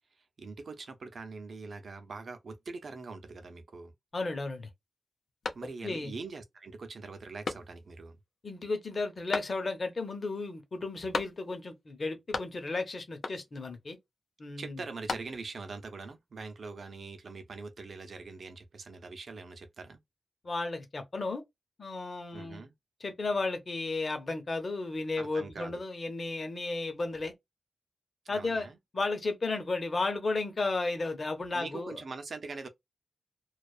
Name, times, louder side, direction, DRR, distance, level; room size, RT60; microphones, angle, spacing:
voice 1, 0.4-3.9 5.5-8.2 14.6-20.0 22.3-22.7 25.2-25.8 28.2-28.8 31.5-32.7, right 4 dB, 60° right, 0.5 m, -43 dB
voice 2, 4.1-4.7 5.8-6.1 8.4-14.0 14.4-14.8 20.4-21.4 21.8-22.6 23.0-27.3 28.3-28.7 28.9-32.0, left 3 dB, 40° left, 0.8 m, -33 dB
sound 1, 5.4-6.1 6.5-6.6 7.4-8.1 9.3-9.9 11.1-11.7 12.0-12.8 13.2-13.7 14.7-15.7, left 4 dB, 85° left, 0.5 m, -38 dB
2.5 x 2.3 x 2.3 m
wide cardioid pair, 145°, 0 cm